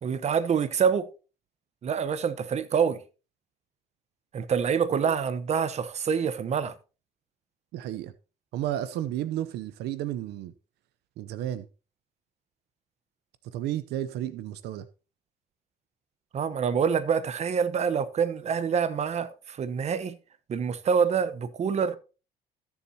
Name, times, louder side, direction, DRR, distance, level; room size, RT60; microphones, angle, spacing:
voice 1, 0.0-1.1 1.8-3.0 4.3-6.7 16.3-20.2 20.5-22.0, right 7 dB, 40° right, 1.0 m, -26 dB
voice 2, 7.7-8.1 8.5-10.5 11.2-11.7 13.5-14.9, right 12 dB, 80° right, 0.7 m, -32 dB
17.0 x 7.3 x 2.8 m
cardioid pair, 110°, 17 cm